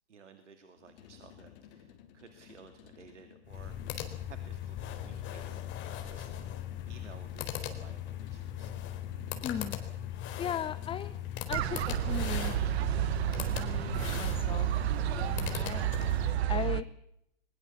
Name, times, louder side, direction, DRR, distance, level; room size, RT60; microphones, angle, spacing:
voice 1, 0.1-3.8 4.3-6.4 6.9-8.7, right 6 dB, 85° right, 8 dB, 2.5 m, -55 dB
sound 1, 0.8-16.9, left 10 dB, 50° left, 4.2 m, -56 dB
Computer Mouse, 3.4-16.5, left 11 dB, 35° left, 4.1 m, -39 dB
voice 2, 9.4-9.8 10.4-11.2 11.5-12.6 13.3-14.7 15.2-15.9 16.5-16.9, left 9 dB, 15° left, 13 dB, 0.8 m, -37 dB
sound 2, 11.5-16.8, right 13 dB, 65° right, 1.2 m, -31 dB
22.5 x 21.0 x 7.3 m, 0.76 s
hypercardioid pair, 120°, 35 cm